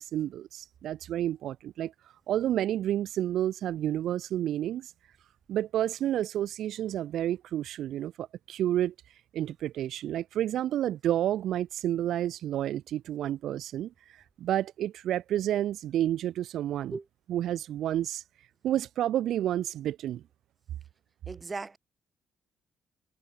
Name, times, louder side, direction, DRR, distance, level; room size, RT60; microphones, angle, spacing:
voice 1, 0.0-1.9 2.3-4.9 5.5-8.9 9.3-13.9 14.4-16.9 17.3-18.2 18.6-20.2, right 12 dB, 75° right, 0.6 m, -30 dB
voice 2, 21.3-21.8, right 3 dB, 25° right, 2.6 m, -37 dB
cardioid pair, 90°, 0 cm